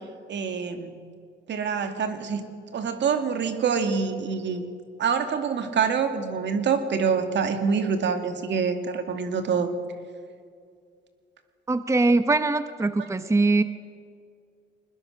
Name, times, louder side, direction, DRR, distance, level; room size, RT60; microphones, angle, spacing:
voice 1, 0.3-0.9 1.5-2.4 2.7-4.7 5.0-9.7, right 6 dB, 65° right, 7 dB, 2.3 m, -26 dB
voice 2, 11.7-13.6, right 3 dB, 15° right, 11 dB, 0.8 m, -22 dB
22.0 x 20.5 x 6.4 m, 2.2 s
cardioid pair, 90°, 20 cm